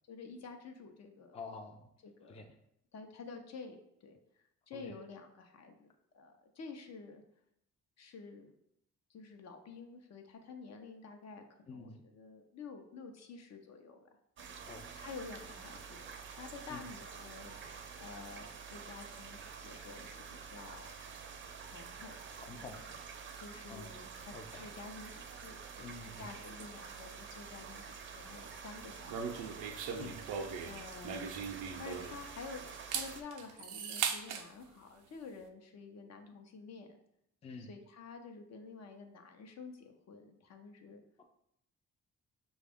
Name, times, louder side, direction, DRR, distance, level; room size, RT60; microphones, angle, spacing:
voice 1, 0.1-1.4 2.0-2.4 2.9-4.2 4.7-7.2 8.0-8.5 9.1-14.0 14.9-17.6 18.0-20.9 21.6-22.7 23.4-29.5 30.6-31.3 31.8-37.0 37.6-41.0, left 4 dB, 60° left, 5 dB, 0.7 m, -50 dB
voice 2, 1.3-1.9 2.3-2.5 4.7-4.9 11.7-12.0 14.7-14.9 16.7-16.8 22.4-23.0 23.7-23.9 24.3-24.7 25.8-26.3 30.0-30.2 37.4-37.7, left 3 dB, 20° left, 4 dB, 0.4 m, -48 dB
sound 1, 14.4-33.2, right 6 dB, 40° right, 0.5 m, -48 dB
sound 2, 29.1-32.3 32.7-34.5, right 6 dB, 90° right, 0.5 m, -39 dB
5.1 x 2.3 x 3.5 m, 0.76 s
cardioid pair, 90°, 30 cm